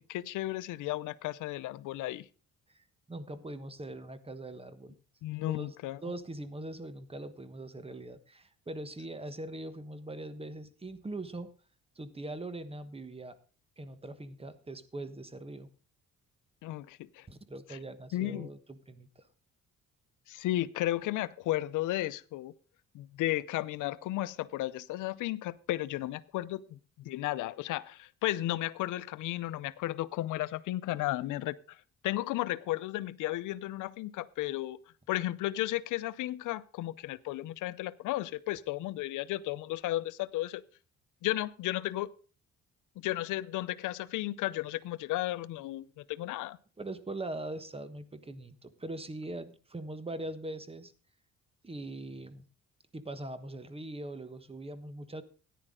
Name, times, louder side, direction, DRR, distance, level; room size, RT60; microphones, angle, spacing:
voice 1, 0.0-2.3 5.2-6.0 16.6-17.3 17.7-17.8 18.1-18.5 20.3-22.5 22.9-31.8 32.0-34.8 35.1-40.6 41.2-42.1 43.0-46.6, left 16 dB, 85° left, 17 dB, 0.6 m, -34 dB
voice 2, 2.7-4.9 5.5-5.8 6.0-11.5 12.0-13.4 13.8-15.7 17.3-19.3 46.8-50.9 51.6-52.4 52.9-55.2, right 2 dB, 20° right, 12 dB, 1.2 m, -42 dB
14.0 x 10.0 x 3.7 m, 0.37 s
cardioid pair, 90°, 30 cm